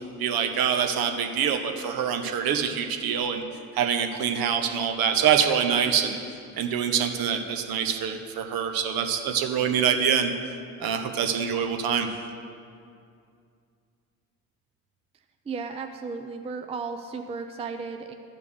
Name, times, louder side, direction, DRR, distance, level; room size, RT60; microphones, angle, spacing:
voice 1, 0.0-3.4 3.7-6.2 6.6-10.3 10.8-12.1, right 8 dB, 50° right, 5 dB, 1.0 m, -25 dB
voice 2, 15.5-18.1, right 4 dB, 15° right, 5 dB, 0.5 m, -34 dB
12.5 x 5.2 x 6.5 m, 2.3 s
figure-of-eight pair, 55°, 46 cm